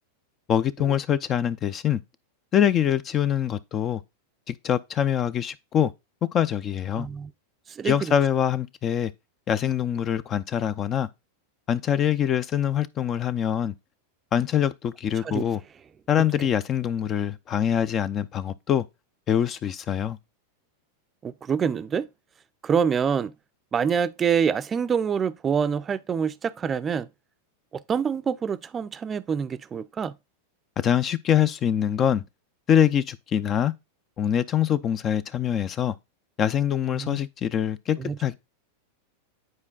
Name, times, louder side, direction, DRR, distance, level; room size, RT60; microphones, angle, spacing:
voice 1, 0.5-2.0 2.5-4.0 4.5-5.9 6.3-7.1 7.8-9.1 9.5-11.1 11.7-13.7 14.3-15.6 16.1-18.8 19.3-20.2 30.8-32.2 32.7-33.7 34.2-36.0 36.4-38.3, left 9 dB, 30° left, 0.5 m, -24 dB
voice 2, 7.0-7.3 7.7-8.1 15.2-15.4 21.2-22.1 22.6-23.3 23.7-27.1 27.7-30.1 36.9-37.2 38.0-38.2, right 7 dB, 25° right, 0.5 m, -26 dB
9.7 x 4.5 x 2.3 m
hypercardioid pair, 120°, 0 cm